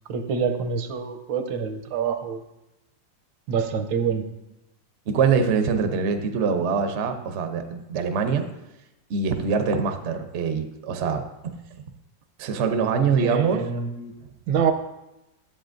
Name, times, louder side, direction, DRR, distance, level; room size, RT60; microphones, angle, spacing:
voice 1, 0.1-2.4 3.5-4.2 13.2-14.1 14.5-14.7, right 6 dB, 80° right, 7 dB, 1.4 m, -26 dB
voice 2, 5.1-8.5 9.1-11.6 12.4-13.7, right 5 dB, 60° right, 7 dB, 0.7 m, -24 dB
11.5 x 7.6 x 2.5 m, 0.93 s
omnidirectional pair, 2.1 m